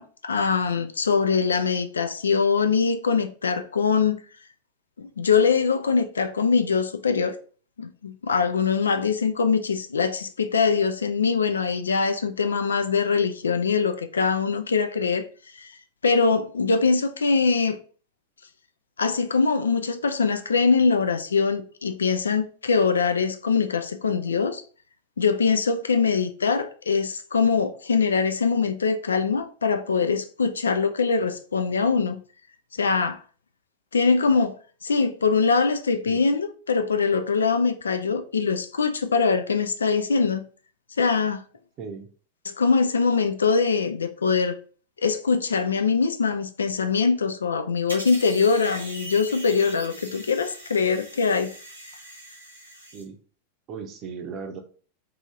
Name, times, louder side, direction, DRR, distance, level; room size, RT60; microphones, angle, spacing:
voice 1, 0.0-4.2 5.0-7.4 7.8-15.3 15.5-15.7 16.0-17.8 19.0-24.6 25.2-32.2 32.7-33.2 33.9-34.5 34.8-40.4 41.0-41.4 42.5-44.6 45.0-51.5, left 5 dB, 70° left, 0.3 m, -23 dB
voice 2, 41.8-42.1 52.9-53.2 53.7-54.6, right 5 dB, 35° right, 0.6 m, -36 dB
sound 1, 47.9-53.0, right 1 dB, 85° right, 1.0 m, -41 dB
2.7 x 2.7 x 3.5 m
figure-of-eight pair, 90°, 0 cm